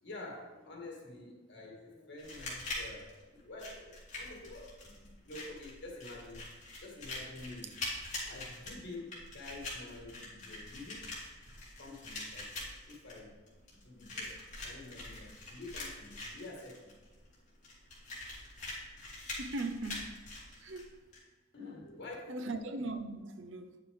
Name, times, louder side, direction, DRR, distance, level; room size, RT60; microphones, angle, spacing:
voice 1, 0.0-6.5 6.8-7.7 8.2-11.1 11.8-12.6 12.9-13.4 13.7-16.9 21.5-22.1, left 2 dB, 60° left, 2.1 m, -48 dB
sound 1, 2.2-21.2, left 2 dB, 40° left, 2.8 m, -44 dB
voice 2, 19.4-20.2 20.6-21.0 22.3-23.8, right 2 dB, 85° right, 0.8 m, -39 dB
9.4 x 6.8 x 3.5 m
head